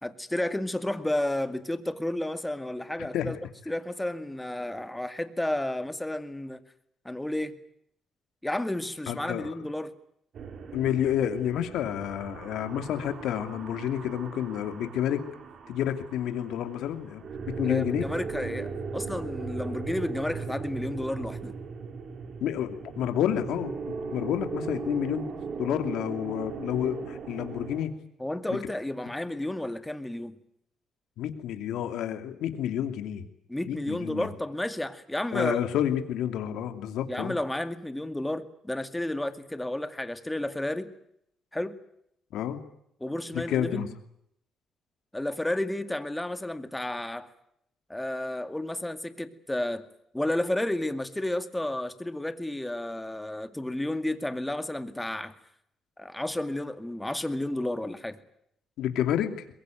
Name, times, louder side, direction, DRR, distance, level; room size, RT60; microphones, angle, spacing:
voice 1, 0.0-3.4 3.7-6.6 7.0-7.6 8.4-9.9 17.6-21.5 28.2-30.4 33.5-35.6 37.1-40.9 41.5-41.8 43.0-43.9 45.1-47.3 47.9-49.9 50.1-55.3 56.0-58.2, left 1 dB, 10° left, 10 dB, 2.2 m, -32 dB
voice 2, 9.1-9.5 10.7-15.2 15.7-18.1 22.4-23.7 24.1-25.3 25.6-27.9 28.5-28.6 31.2-33.2 33.7-34.3 35.3-37.3 42.3-42.6 43.3-43.9 58.8-59.4, left 10 dB, 85° left, 8 dB, 2.7 m, -29 dB
sound 1, 10.3-27.8, right 5 dB, 60° right, 3.5 m, -38 dB
22.5 x 22.0 x 9.3 m, 0.74 s
cardioid pair, 90°, 0 cm